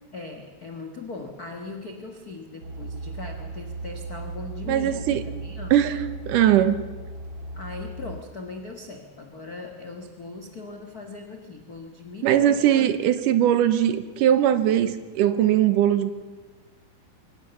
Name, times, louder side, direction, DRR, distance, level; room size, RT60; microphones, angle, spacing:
voice 1, 0.1-5.8 7.5-12.9, left 3 dB, 75° left, 3 dB, 0.8 m, -39 dB
sound 1, 2.6-8.2, right 3 dB, 40° right, 2.4 m, -36 dB
voice 2, 4.7-5.2 5.7-6.9 12.2-16.1, right 11 dB, 70° right, 12 dB, 2.2 m, -20 dB
23.0 x 18.5 x 7.0 m, 1.3 s
omnidirectional pair, 4.4 m